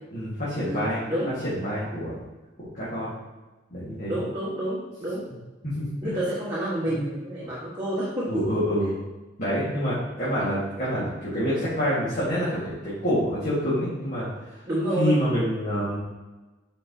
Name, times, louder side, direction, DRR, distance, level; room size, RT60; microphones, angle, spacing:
voice 1, 0.1-1.0 1.4-2.2 2.6-3.1 3.7-4.2 5.6-6.2 6.8-6.9 7.4-7.5 8.3-9.0 9.4-14.5 15.0-16.0, equal, 40° left, -9 dB, 1.7 m, -27 dB
voice 2, 0.6-1.3 4.1-5.3 6.0-8.5 14.7-15.2, right 1 dB, 20° right, -10 dB, 1.4 m, -29 dB
9.7 x 4.6 x 2.8 m, 1.2 s
head